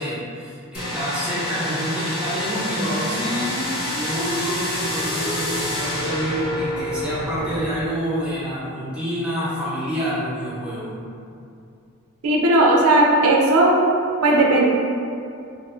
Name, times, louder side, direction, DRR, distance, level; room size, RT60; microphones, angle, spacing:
voice 1, 0.0-3.6 4.0-11.0, equal, 5° right, -10 dB, 0.8 m, -28 dB
sound 1, 0.7-7.6, left 1 dB, 70° left, 1.0 m, -27 dB
voice 2, 12.2-13.7 14.2-14.7, right 2 dB, 80° right, -2 dB, 0.4 m, -16 dB
2.5 x 2.3 x 3.1 m, 2.5 s
head